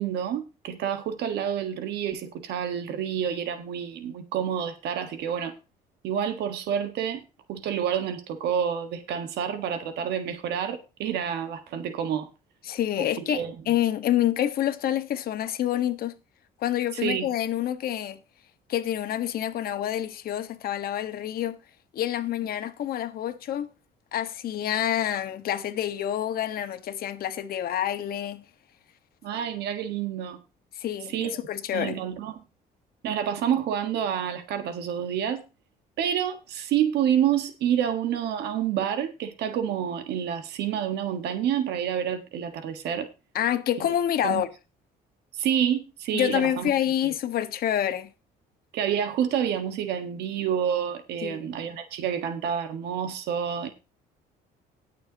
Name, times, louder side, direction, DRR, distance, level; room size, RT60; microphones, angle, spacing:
voice 1, 0.0-5.6 6.0-7.2 7.5-12.3 13.0-13.5 16.9-17.3 29.2-30.4 31.1-31.3 31.7-32.4 33.0-35.4 36.0-43.1 43.8-43.9 44.2-44.4 45.3-46.7 48.7-53.7, right 9 dB, 80° right, 1.5 m, -28 dB
voice 2, 12.6-16.1 16.6-18.2 18.7-21.6 21.9-23.7 24.1-28.4 30.8-32.0 43.3-44.5 46.1-48.1 51.2-51.5, left 11 dB, 60° left, 1.4 m, -27 dB
19.5 x 6.8 x 2.9 m
cardioid pair, 110°, 17 cm